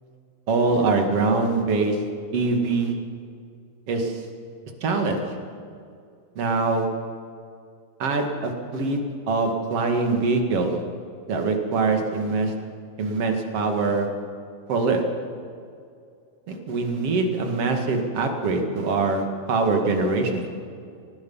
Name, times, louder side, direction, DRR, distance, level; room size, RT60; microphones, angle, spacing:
voice 1, 0.5-2.0 2.3-2.9 3.9-4.2 4.8-5.2 6.4-6.9 8.0-9.0 9.3-10.7 11.3-12.5 13.0-14.1 14.7-15.0 16.5-20.5, right 3 dB, 45° right, 4 dB, 2.7 m, -23 dB
23.0 x 20.0 x 5.7 m, 2.3 s
omnidirectional pair, 4.4 m